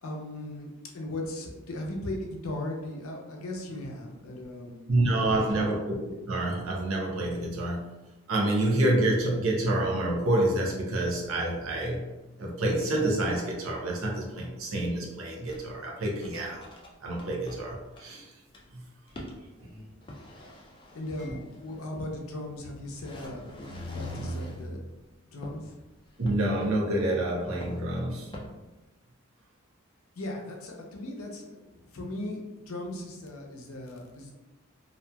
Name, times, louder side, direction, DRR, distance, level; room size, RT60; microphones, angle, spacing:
voice 1, 0.0-5.8 19.6-19.9 20.9-24.8 25.2-25.7 30.2-32.4 32.7-34.3, left 1 dB, 80° left, 1 dB, 0.6 m, -38 dB
voice 2, 4.9-8.0 8.3-16.6 17.0-18.3 18.7-18.9 24.2-24.3 26.2-28.3, right 1 dB, 75° right, -1 dB, 0.6 m, -28 dB
sound 1, 15.5-15.7 16.2-16.9 17.2-17.3 17.5-17.6 18.0-18.1 18.5-18.6 19.1-19.4 20.1-22.0 22.5-22.6 22.9-24.7 25.4-25.7 26.3-26.8 27.6-28.5, equal, 25° left, 0.3 m, -41 dB
2.8 x 2.4 x 2.2 m, 1.1 s
head